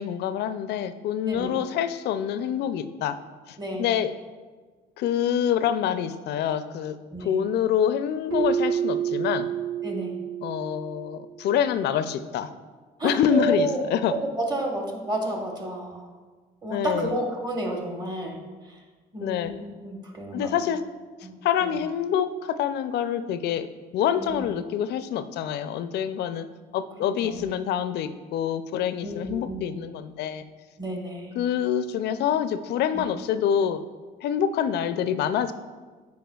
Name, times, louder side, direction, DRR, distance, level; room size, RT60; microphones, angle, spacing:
voice 1, 0.0-3.2 3.5-4.1 5.0-6.9 7.2-9.5 10.4-12.5 13.0-14.1 16.7-17.2 19.2-19.5 20.3-20.8 21.4-23.7 23.9-26.5 26.7-30.4 31.4-33.8 34.2-35.5, left 9 dB, 65° left, 12 dB, 0.4 m, -26 dB
Keyboard (musical), 8.3-11.1, right 8 dB, 55° right, 1.4 m, -28 dB
voice 2, 9.8-10.1 13.0-13.8 14.1-16.1 16.6-18.4 18.6-18.8 19.1-20.6 21.2-21.3 21.6-21.8 24.2-24.3 27.2-27.5 29.0-29.6 30.8-31.3 32.9-33.0, right 1 dB, 20° right, 1 dB, 1.3 m, -31 dB
9.1 x 4.7 x 2.3 m, 1.4 s
supercardioid pair, 90°, 19 cm